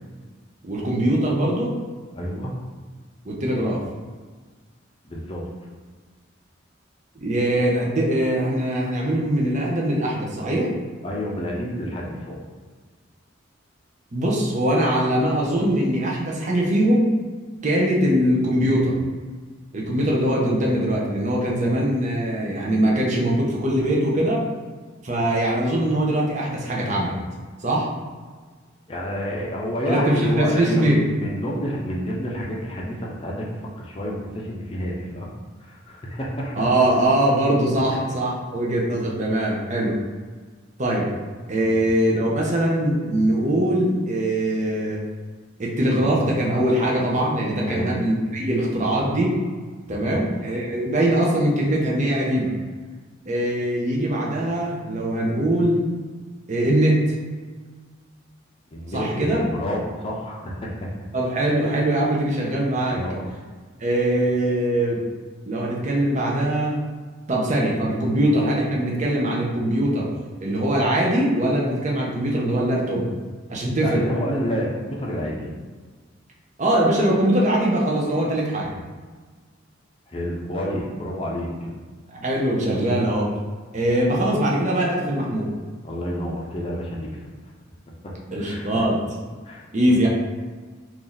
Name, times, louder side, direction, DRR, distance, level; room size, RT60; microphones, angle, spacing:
voice 1, 0.6-1.8 3.3-3.8 7.1-10.7 14.1-17.1 17.6-19.0 19.7-24.4 25.0-27.2 27.6-27.9 29.9-31.0 36.5-40.0 40.8-41.1 41.5-45.0 45.6-49.4 49.9-52.5 53.3-55.8 56.5-57.3 58.9-59.4 61.1-63.0 63.8-65.0 65.4-66.8 67.3-70.1 70.4-73.1 73.5-74.1 76.6-78.7 82.1-83.3 83.7-85.5 88.3-89.0 89.7-90.1, right 1 dB, 40° right, -3 dB, 0.7 m, -22 dB
voice 2, 2.1-2.5 5.0-5.4 11.0-12.4 28.9-35.3 35.7-36.6 41.7-41.9 47.7-47.9 49.8-50.2 58.7-60.7 62.9-63.3 73.8-75.5 80.1-81.7 85.8-87.3 88.4-88.8 89.4-89.6, equal, 30° left, -3 dB, 0.6 m, -29 dB
3.0 x 2.8 x 3.9 m, 1.4 s
head